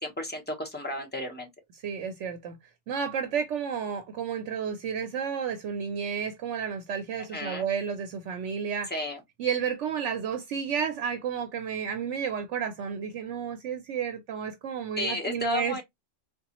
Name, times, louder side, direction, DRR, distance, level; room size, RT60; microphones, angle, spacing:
voice 1, 0.0-1.5 7.3-7.7 8.9-9.2 15.0-15.8, left 2 dB, 10° left, 0.9 m, -33 dB
voice 2, 1.8-2.6 2.9-8.9 9.4-15.8, right 7 dB, 75° right, 0.9 m, -31 dB
3.8 x 2.4 x 2.8 m
omnidirectional pair, 1.3 m